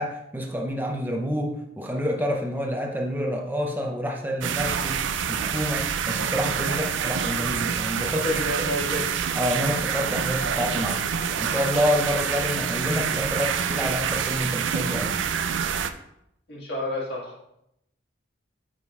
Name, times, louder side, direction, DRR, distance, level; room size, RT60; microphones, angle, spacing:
voice 1, 0.0-8.8 9.3-11.0 11.4-15.2, equal, 10° right, 1 dB, 0.7 m, -28 dB
sound 1, 4.4-15.9, right 7 dB, 75° right, 0.4 m, -27 dB
voice 2, 8.2-9.0 16.5-17.3, left 1 dB, 55° left, -4 dB, 2.0 m, -29 dB
9.2 x 5.0 x 2.4 m, 0.80 s
head